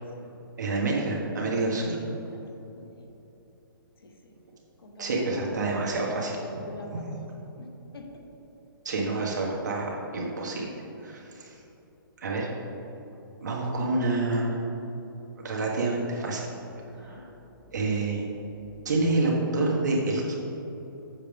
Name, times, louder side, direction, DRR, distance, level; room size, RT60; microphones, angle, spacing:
voice 1, 0.6-2.0 5.0-6.4 6.9-7.0 8.8-10.7 11.0-11.6 12.2-12.5 13.4-14.6 15.4-16.4 17.0-17.2 17.7-18.3 18.8-20.3, right 2 dB, 50° right, -2 dB, 1.6 m, -28 dB
voice 2, 2.3-3.1 4.0-4.3 4.8-5.8 6.2-7.7 7.9-8.2 16.8-17.3 18.5-18.9, left 1 dB, 90° left, 2 dB, 1.3 m, -45 dB
7.4 x 7.4 x 3.5 m, 3.0 s
hypercardioid pair, 180°, 12 cm